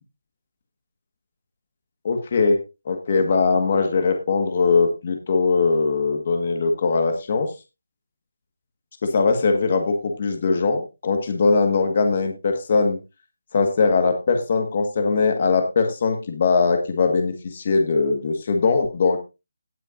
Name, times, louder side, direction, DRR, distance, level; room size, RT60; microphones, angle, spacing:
voice 1, 2.0-2.6 2.8-7.5 9.0-13.0 13.5-19.2, left 4 dB, 30° left, 5 dB, 1.5 m, -21 dB
17.0 x 8.7 x 2.6 m, 0.27 s
figure-of-eight pair, 175°, 0 cm